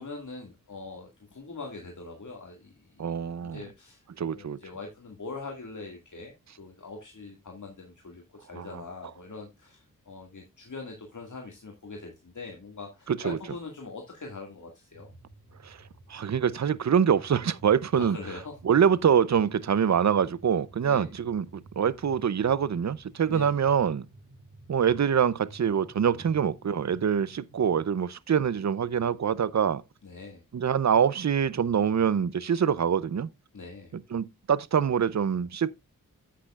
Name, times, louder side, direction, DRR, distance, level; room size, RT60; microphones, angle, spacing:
voice 1, 0.0-15.1 17.9-18.6 20.8-21.1 23.3-23.7 30.0-30.4 33.5-33.9, left 3 dB, 60° left, 2.0 m, -42 dB
voice 2, 3.0-3.6 4.2-4.6 8.6-8.7 13.1-13.4 15.6-15.8 16.1-18.2 18.6-24.0 24.7-29.8 30.5-33.3 34.1-35.8, right 7 dB, 50° right, 0.6 m, -25 dB
sound 1, 14.9-27.9, right 2 dB, 85° right, 2.1 m, -53 dB
10.0 x 8.6 x 2.4 m
cardioid pair, 50°, 35 cm